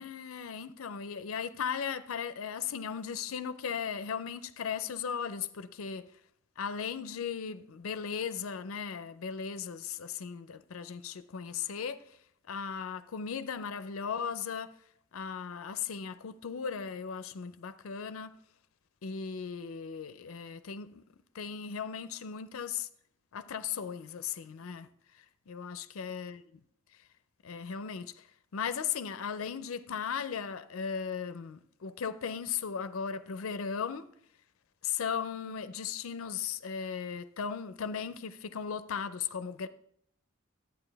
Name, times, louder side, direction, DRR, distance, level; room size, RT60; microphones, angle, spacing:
voice 1, 0.0-6.1 6.6-12.0 12.5-14.7 15.1-18.3 19.0-21.0 21.3-22.9 23.3-24.9 25.1-26.4 27.4-28.3 28.5-34.1 34.8-39.7, left 7 dB, 80° left, 0.5 m, -37 dB
11.0 x 8.8 x 3.4 m
head